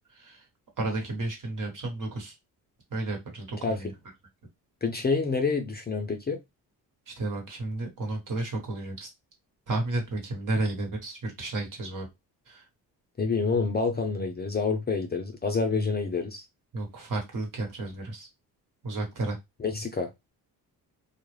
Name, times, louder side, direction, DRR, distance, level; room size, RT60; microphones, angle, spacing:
voice 1, 0.1-0.4 0.8-2.3 2.9-3.9 7.1-9.1 9.7-12.1 12.5-12.6 16.7-18.3 18.8-19.4, right 2 dB, 50° right, 1.2 m, -32 dB
voice 2, 4.8-6.4 13.2-16.4 19.6-20.1, left 4 dB, 25° left, 0.5 m, -27 dB
2.3 x 2.0 x 3.1 m
supercardioid pair, 70°, 41 cm